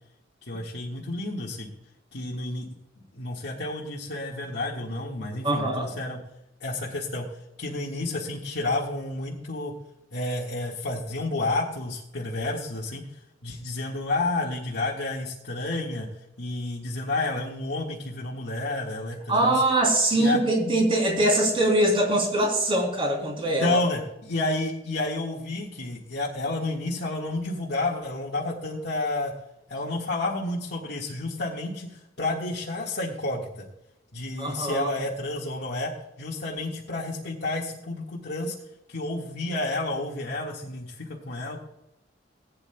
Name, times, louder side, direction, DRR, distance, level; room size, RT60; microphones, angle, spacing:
voice 1, 0.4-1.7 2.1-2.7 3.0-6.2 6.6-9.7 10.1-16.1 16.4-19.6 20.1-20.4 23.6-29.3 29.7-33.7 34.1-35.9 36.2-38.5 38.9-41.6, left 2 dB, 65° left, -5 dB, 1.7 m, -30 dB
voice 2, 5.4-5.9 19.3-23.8 34.4-34.9, right 1 dB, 30° right, 1 dB, 3.4 m, -23 dB
19.5 x 9.6 x 2.3 m, 0.85 s
head